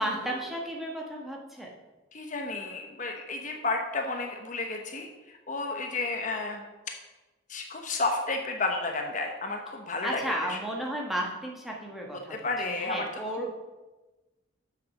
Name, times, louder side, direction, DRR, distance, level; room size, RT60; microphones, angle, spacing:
voice 1, 0.0-1.7 10.0-13.5, right 1 dB, ahead, -2 dB, 1.3 m, -33 dB
voice 2, 2.1-5.1 5.5-6.6 7.5-10.2 10.5-10.6 12.1-13.1, left 3 dB, 40° left, 3 dB, 1.0 m, -32 dB
7.7 x 6.7 x 6.6 m, 1.1 s
head